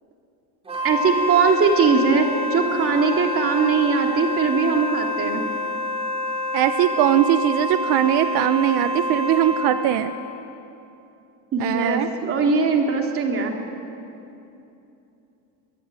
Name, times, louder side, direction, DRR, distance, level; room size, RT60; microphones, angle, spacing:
Wind instrument woodwind instrument, 0.6-9.9, left 1 dB, 15° right, 3.4 m, -27 dB
voice 1, 0.8-5.4 11.5-13.5, right 5 dB, 35° right, 3 dB, 3.1 m, -20 dB
voice 2, 6.5-10.1 11.6-12.1, right 12 dB, 80° right, 10 dB, 1.1 m, -20 dB
24.5 x 22.5 x 9.8 m, 2.8 s
cardioid pair, 175°, 38 cm